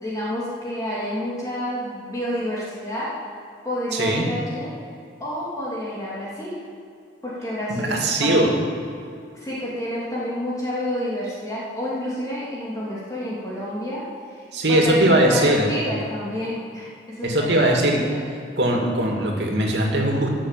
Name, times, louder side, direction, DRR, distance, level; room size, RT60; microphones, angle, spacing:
voice 1, 0.0-3.1 3.6-4.8 5.2-6.6 7.2-8.5 9.3-14.1 14.3-17.7 18.0-18.2, equal, 20° left, -7 dB, 2.6 m, -29 dB
voice 2, 3.9-4.2 7.7-8.6 14.5-15.7 17.2-18.0 18.6-20.3, right 1 dB, 80° right, 0 dB, 2.5 m, -20 dB
14.5 x 7.4 x 7.5 m, 2.4 s
head